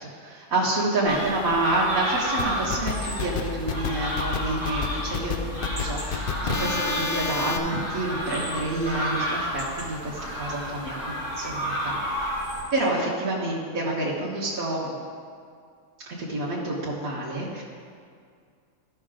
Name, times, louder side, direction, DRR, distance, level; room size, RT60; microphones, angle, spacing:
voice 1, 0.0-15.0 16.2-17.6, right 2 dB, 55° right, -7 dB, 1.7 m, -28 dB
sound 1, 1.0-12.6, equal, 30° left, 2.6 m, -31 dB
sound 2, 2.4-7.6, left 6 dB, 70° left, 0.5 m, -30 dB
14.5 x 5.7 x 3.8 m, 2.2 s
omnidirectional pair, 1.8 m